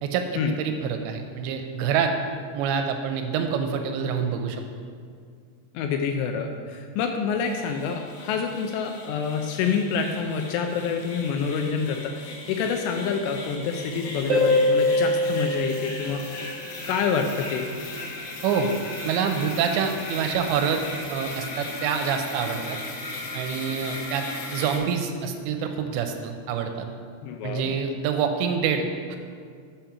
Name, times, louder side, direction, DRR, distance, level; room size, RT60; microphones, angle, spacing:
voice 1, 0.0-2.1 2.5-4.6 18.4-18.7 19.0-22.8 23.3-26.9 27.4-29.2, right 6 dB, 85° right, 5 dB, 2.7 m, -26 dB
voice 2, 5.7-16.2 16.9-17.7 27.2-27.7, left 6 dB, 85° left, 4 dB, 2.5 m, -27 dB
sound 1, 7.3-24.8, left 2 dB, 65° left, 2.3 m, -37 dB
Harp, 14.3-16.8 20.3-20.4, left 1 dB, 65° right, 1.6 m, -23 dB
7.2 x 5.2 x 5.7 m, 2.1 s
omnidirectional pair, 5.2 m